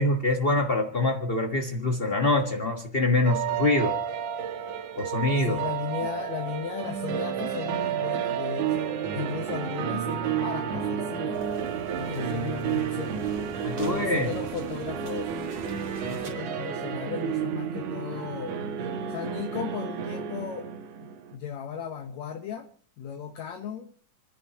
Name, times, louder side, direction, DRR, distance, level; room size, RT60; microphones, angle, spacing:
voice 1, 0.0-4.0 4.9-5.6 13.6-14.3, left 2 dB, 50° left, 4 dB, 0.7 m, -25 dB
sound 1, 3.3-21.4, right 8 dB, 80° right, 2.6 m, -31 dB
voice 2, 5.4-11.4 12.0-13.2 13.7-15.3 16.1-18.6 19.1-20.7 21.0-22.7 23.0-23.9, left 7 dB, 70° left, 4 dB, 2.3 m, -36 dB
sound 2, 11.3-16.3, right 3 dB, 45° right, 3.3 m, -44 dB
29.5 x 10.5 x 2.9 m, 0.42 s
omnidirectional pair, 3.5 m